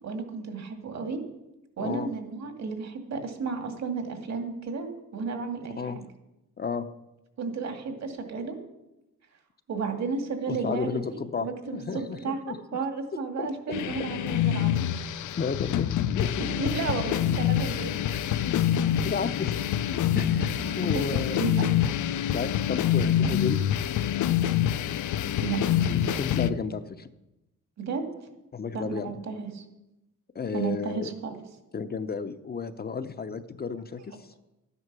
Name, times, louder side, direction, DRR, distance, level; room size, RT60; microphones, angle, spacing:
voice 1, 0.0-1.2 1.8-6.0 7.4-8.6 9.7-14.7 16.5-17.9 20.3-20.8 21.3-21.7 25.4-25.6 27.8-28.0 28.7-29.6 30.5-31.4, right 5 dB, 60° right, 5 dB, 2.2 m, -33 dB
voice 2, 1.8-2.1 5.8-6.0 6.6-6.9 10.5-12.6 13.4-13.5 15.4-15.9 16.1-16.5 18.8-19.6 20.1-21.4 22.3-23.6 25.8-27.1 28.5-29.1 30.3-31.1 31.7-34.2, left 5 dB, 30° left, 11 dB, 0.7 m, -32 dB
sound 1, 13.7-26.5, left 10 dB, 80° left, 0.6 m, -26 dB
13.0 x 9.6 x 6.1 m, 0.95 s
cardioid pair, 125°, 30 cm